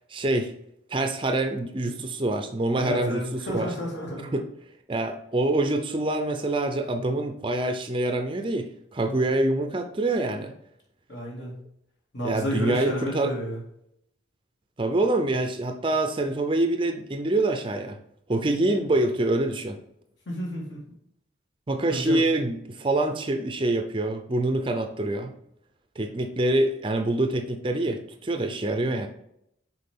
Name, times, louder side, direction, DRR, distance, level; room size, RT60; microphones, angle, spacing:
voice 1, 0.1-0.5 0.9-3.7 4.3-4.4 4.9-10.5 12.2-13.3 14.8-18.0 18.3-19.8 21.7-25.3 26.0-29.1, right 2 dB, 25° right, 6 dB, 0.5 m, -25 dB
voice 2, 2.7-4.3 11.1-11.6 12.1-13.6 20.3-20.8 21.9-22.2, equal, 60° left, -3 dB, 2.3 m, -31 dB
6.7 x 4.3 x 3.7 m, 0.75 s
head